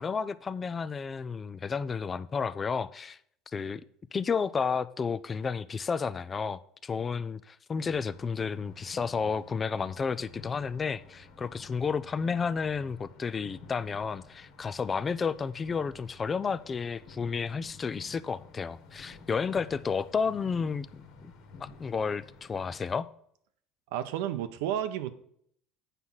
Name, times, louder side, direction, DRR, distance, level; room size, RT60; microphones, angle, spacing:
voice 1, 0.0-3.2 3.5-3.8 4.1-21.3 21.6-23.1, left 5 dB, 25° left, 0.4 m, -32 dB
sound 1, 7.8-23.0, left 3 dB, 65° left, 1.6 m, -52 dB
voice 2, 23.9-25.1, right 11 dB, 85° right, 0.8 m, -31 dB
8.2 x 5.9 x 5.6 m
cardioid pair, 135°, 0 cm